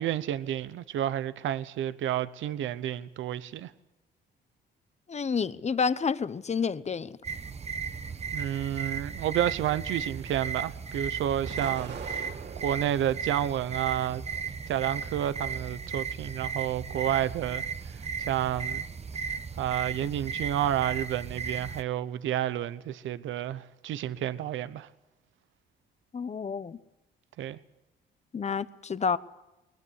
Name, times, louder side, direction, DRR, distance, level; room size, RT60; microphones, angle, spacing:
voice 1, 0.0-3.7 8.3-12.3 12.6-14.2 14.7-18.8 19.6-24.9 27.4-27.6, right 11 dB, 75° right, 0.9 m, -30 dB
voice 2, 5.1-7.2 26.1-26.8 28.3-29.2, left 5 dB, 35° left, 1.1 m, -29 dB
sound 1, 7.2-21.8, right 6 dB, 35° right, 1.0 m, -36 dB
Explosion, 11.5-13.1 13.6-14.5, right 5 dB, 60° right, 3.4 m, -43 dB
21.0 x 20.0 x 8.3 m
cardioid pair, 90°, 20 cm